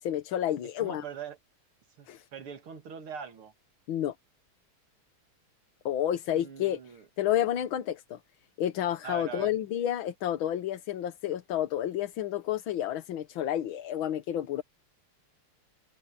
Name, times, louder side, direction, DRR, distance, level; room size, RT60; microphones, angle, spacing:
voice 1, 0.0-1.0 2.1-2.2 3.9-4.1 5.8-6.8 7.2-8.2 8.6-14.6, left 11 dB, 70° left, 1.8 m, -30 dB
voice 2, 0.6-1.4 2.0-3.5 6.3-7.1 9.0-9.6, right 7 dB, 75° right, 2.7 m, -42 dB
omnidirectional pair, 2.4 m